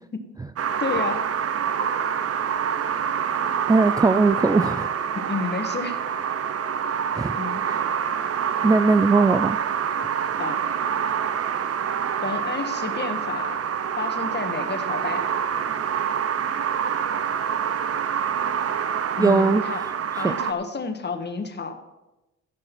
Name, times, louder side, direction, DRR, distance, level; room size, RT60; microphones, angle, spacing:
sound 1, 0.6-20.5, right 8 dB, 50° right, 0.9 m, -26 dB
voice 1, 0.8-1.3 5.1-6.0 7.3-7.6 10.3-10.6 12.2-13.6 14.0-15.3 19.2-19.8 20.2-21.8, left 4 dB, 35° left, 7 dB, 1.6 m, -30 dB
voice 2, 3.7-4.9 7.1-7.4 7.7-7.8 8.6-9.6 19.2-19.6 20.2-20.3, right 3 dB, 15° right, 11 dB, 0.4 m, -19 dB
15.0 x 6.4 x 6.1 m, 0.99 s
cardioid pair, 90°, 30 cm